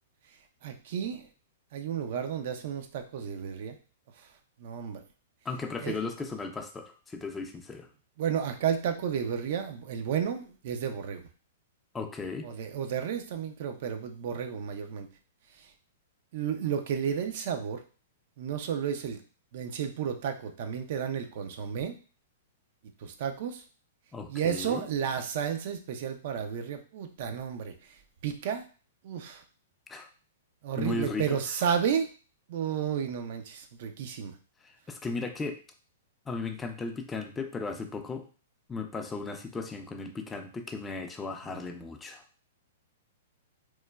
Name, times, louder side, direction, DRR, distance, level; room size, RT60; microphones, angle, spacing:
voice 1, 0.6-1.3 1.7-3.8 4.6-5.0 5.8-5.9 8.2-11.2 12.4-15.1 16.3-17.8 18.4-19.2 19.5-21.9 23.0-23.6 24.3-27.7 28.2-28.6 29.0-29.4 30.6-32.1 32.5-34.3, right 8 dB, 60° right, 7 dB, 0.4 m, -32 dB
voice 2, 5.5-7.9 11.9-12.5 24.1-24.9 29.9-30.1 30.8-31.4 34.6-35.6 36.3-38.3 38.7-42.2, left 3 dB, 15° left, 5 dB, 0.3 m, -36 dB
3.0 x 2.1 x 2.2 m, 0.37 s
hypercardioid pair, 120°, 0 cm